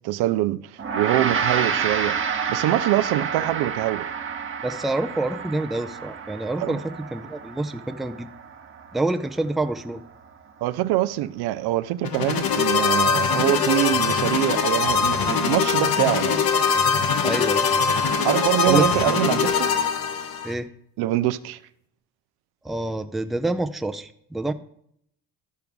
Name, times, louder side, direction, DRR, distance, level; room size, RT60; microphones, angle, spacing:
voice 1, 0.0-2.2 2.5-4.1 6.6-6.8 10.6-16.4 18.2-19.7 21.0-21.6, right 15 dB, 60° right, 0.6 m, -24 dB
Gong, 0.8-10.3, right 6 dB, 30° right, 1.0 m, -29 dB
voice 2, 4.6-8.3 8.9-10.0 17.2-17.7 18.7-18.9 20.4-20.7 22.6-24.5, right 2 dB, ahead, 0.5 m, -27 dB
sound 1, 12.0-20.5, left 5 dB, 55° left, 1.1 m, -22 dB
12.0 x 4.6 x 5.2 m
hypercardioid pair, 70°, 43 cm